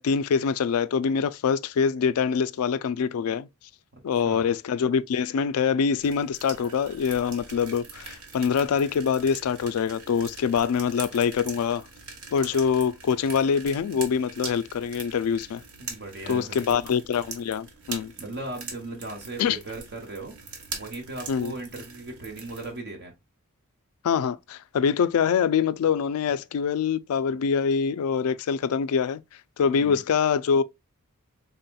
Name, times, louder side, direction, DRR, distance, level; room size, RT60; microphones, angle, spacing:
voice 1, 0.0-3.5 4.0-11.8 12.3-15.6 16.3-18.1 19.4-19.6 21.3-21.5 24.0-29.2 29.6-30.6, left 6 dB, 70° left, 0.3 m, -24 dB
voice 2, 3.9-4.5 15.8-16.8 18.2-20.3 20.7-23.1 29.6-30.0, right 2 dB, 50° right, 0.9 m, -38 dB
sound 1, 6.0-22.8, right 5 dB, 75° right, 1.1 m, -42 dB
4.1 x 3.6 x 2.2 m
head